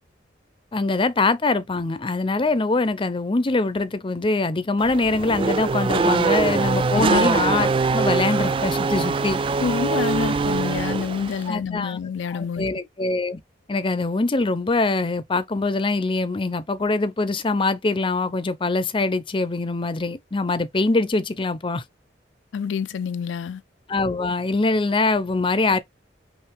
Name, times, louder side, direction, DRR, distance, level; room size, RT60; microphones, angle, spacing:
voice 1, 0.7-9.4 11.5-12.0 12.2-13.4 13.7-21.8 23.9-25.8, left 3 dB, 30° left, 0.6 m, -23 dB
Race car auto racing / Accelerating revving vroom, 4.8-11.5, right 4 dB, 30° right, 0.3 m, -23 dB
voice 2, 6.9-7.3 9.6-12.7 22.5-23.6, left 6 dB, 85° left, 0.4 m, -27 dB
5.6 x 2.5 x 3.3 m
head